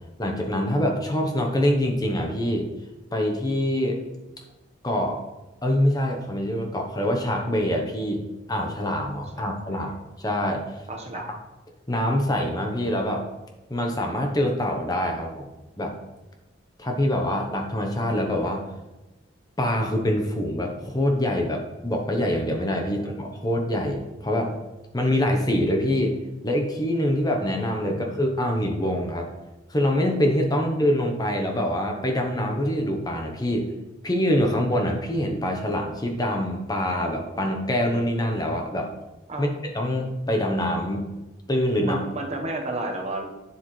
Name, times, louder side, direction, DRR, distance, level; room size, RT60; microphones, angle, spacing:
voice 1, 0.2-2.7 3.1-4.0 4.8-5.2 5.6-10.6 11.1-11.4 11.9-13.2 13.7-15.5 15.8-15.9 16.8-18.7 19.6-24.5 24.9-26.2 26.4-29.3 29.7-33.7 34.0-38.9 39.4-41.1 41.5-42.0, left 1 dB, 20° left, 2 dB, 0.9 m, -25 dB
voice 2, 9.4-9.9 10.9-11.2 22.9-23.1 27.9-28.0 39.3-39.5 41.8-43.2, right 2 dB, 35° right, 2 dB, 1.2 m, -32 dB
9.8 x 7.7 x 3.2 m, 1.0 s
head